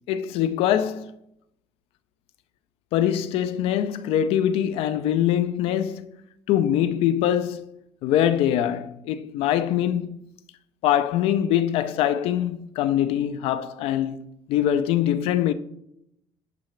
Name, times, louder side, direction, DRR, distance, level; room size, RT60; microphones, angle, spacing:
voice 1, 0.1-1.1 2.9-6.1 6.5-7.7 8.0-10.2 10.8-15.5, left 10 dB, 70° left, 0.5 m, -23 dB
10.5 x 4.9 x 3.2 m
cardioid pair, 170°, 10 cm